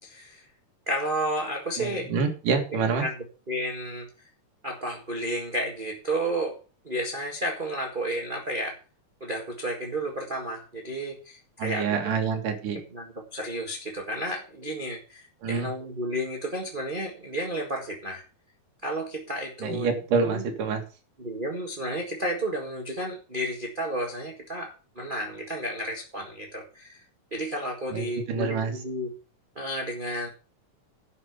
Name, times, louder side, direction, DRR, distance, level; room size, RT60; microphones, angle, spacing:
voice 1, 0.0-0.4 0.9-2.1 2.9-4.1 4.6-6.5 6.8-8.7 9.2-12.1 12.7-18.2 18.8-19.9 20.2-20.4 21.2-27.0 27.3-29.1 29.5-30.3, right 1 dB, 20° right, 1 dB, 1.4 m, -32 dB
voice 2, 1.8-3.1 11.6-12.8 15.4-15.7 19.6-20.8 27.9-28.7, right 5 dB, 80° right, 5 dB, 3.4 m, -27 dB
11.0 x 5.5 x 8.0 m, 0.35 s
omnidirectional pair, 3.7 m